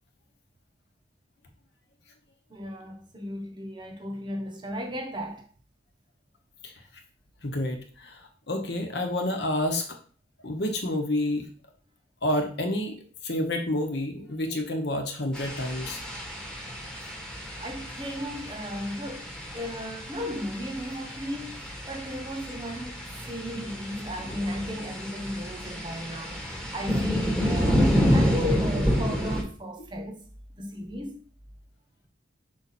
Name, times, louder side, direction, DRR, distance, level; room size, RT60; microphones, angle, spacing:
voice 1, 2.5-5.5 17.6-30.3 30.6-31.2, equal, 25° right, 1.0 m, -35 dB
voice 2, 7.4-8.2 8.5-10.0 10.4-11.4 12.2-13.0 13.2-16.0, left 1 dB, 60° left, 1.1 m, -29 dB
sound 1, 15.3-29.4, equal, 5° left, 1.2 m, -29 dB
5.6 x 4.1 x 4.3 m
head